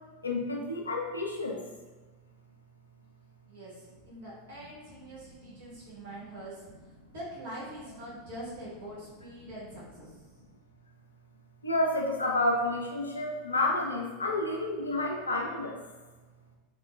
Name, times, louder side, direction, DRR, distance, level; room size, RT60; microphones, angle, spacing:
voice 1, 0.2-1.6 11.6-15.8, left 2 dB, 85° left, 0 dB, 0.4 m, -30 dB
voice 2, 3.5-10.3, right 1 dB, 65° right, -8 dB, 1.4 m, -44 dB
3.5 x 2.2 x 2.2 m, 1.3 s
figure-of-eight pair, 85°, 0 cm